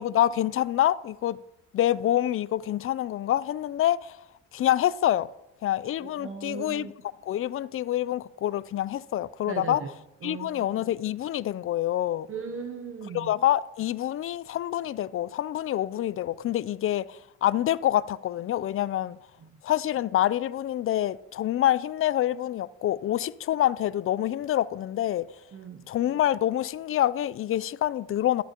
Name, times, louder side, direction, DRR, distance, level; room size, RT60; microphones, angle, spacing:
voice 1, 0.0-1.4 1.7-4.1 4.5-5.3 5.6-6.9 7.3-9.8 10.2-12.3 13.1-19.2 19.6-25.3 25.9-28.4, left 12 dB, 45° left, 0.4 m, -26 dB
voice 2, 6.0-6.9 9.5-9.9 10.2-10.6 12.3-13.3 19.4-19.6 25.5-25.9, right 5 dB, 45° right, 0.9 m, -38 dB
12.5 x 11.5 x 2.9 m
cardioid pair, 90°, 30 cm